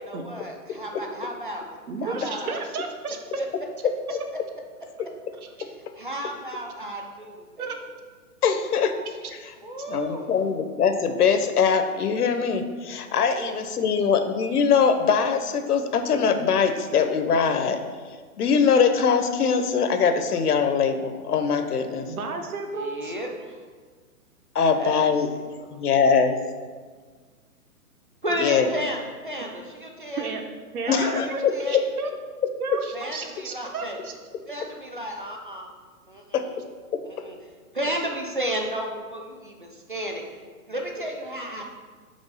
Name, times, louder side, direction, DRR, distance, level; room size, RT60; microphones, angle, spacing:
voice 1, 0.1-2.5 3.4-3.5 6.0-7.7 9.6-10.3 13.4-13.5 22.7-23.6 24.7-25.4 28.2-30.3 30.8-31.8 32.9-34.0 34.5-35.7 36.1-36.6 37.0-37.4 37.7-40.2 40.7-41.6, equal, 35° right, 1 dB, 0.4 m, -33 dB
voice 2, 1.9-3.2 4.1-4.2 5.4-5.6 7.6-7.8 8.9-9.1 22.0-23.1 30.2-30.4 30.7-31.4 31.7-32.1 32.6-34.1, right 4 dB, 70° right, 5 dB, 0.9 m, -32 dB
voice 3, 8.4-8.9 9.9-17.8 18.4-22.1 24.5-25.3 25.7-26.4 28.4-28.7 30.9-31.8 36.3-36.5 36.9-37.0, left 6 dB, 80° left, 8 dB, 0.8 m, -22 dB
5.3 x 3.4 x 5.3 m, 1.5 s
hypercardioid pair, 175°, 45 cm